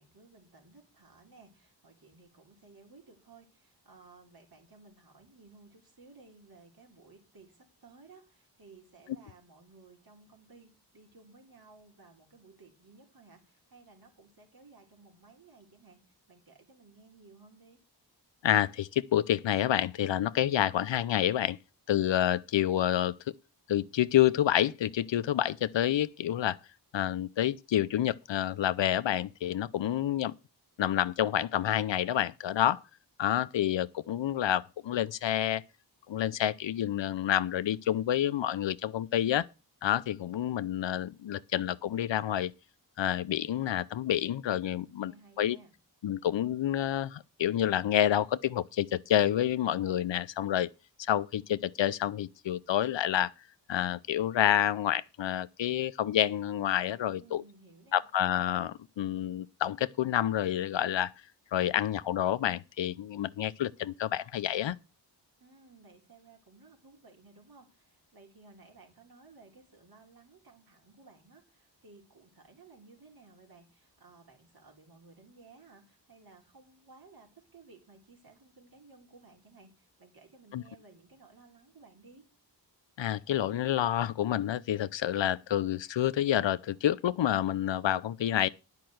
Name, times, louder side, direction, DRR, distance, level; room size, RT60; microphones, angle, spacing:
voice 1, 0.0-17.8 44.6-45.7 57.1-58.0 65.4-82.3, right 3 dB, 55° right, 3.7 m, -57 dB
voice 2, 18.4-21.6 21.9-23.2 23.7-26.6 26.9-30.3 30.8-32.8 33.2-35.6 36.1-39.5 39.8-42.5 43.0-45.1 45.4-45.6 46.0-50.7 51.0-53.3 53.7-57.4 57.9-61.1 61.5-64.8 80.5-80.6 83.0-88.5, left 11 dB, 80° left, 0.6 m, -28 dB
10.5 x 5.7 x 7.7 m
wide cardioid pair, 130°, 44 cm